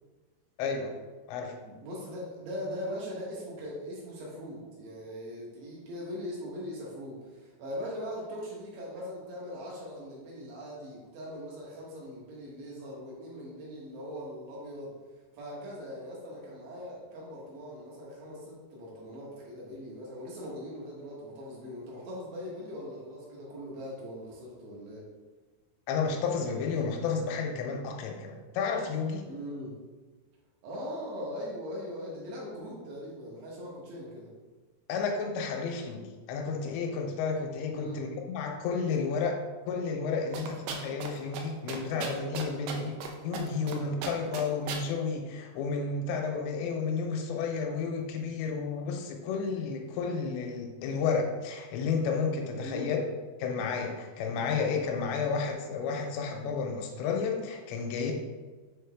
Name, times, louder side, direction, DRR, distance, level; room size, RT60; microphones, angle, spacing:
voice 1, 0.6-0.9 1.3-1.5 25.9-29.3 34.9-42.9 43.2-53.0 53.4-58.1, left 5 dB, 90° left, 2 dB, 2.9 m, -31 dB
voice 2, 1.6-14.9 15.3-25.0 29.3-29.8 30.6-34.3 37.7-38.1 42.5-42.8 52.6-53.0, equal, 75° right, -5 dB, 3.5 m, -40 dB
sound 1, 40.3-41.1 41.3-41.4 41.7-43.1 43.3-43.8 44.0-44.8, right 6 dB, 90° right, 3.1 m, -36 dB
7.2 x 3.9 x 3.5 m, 1.3 s
omnidirectional pair, 5.2 m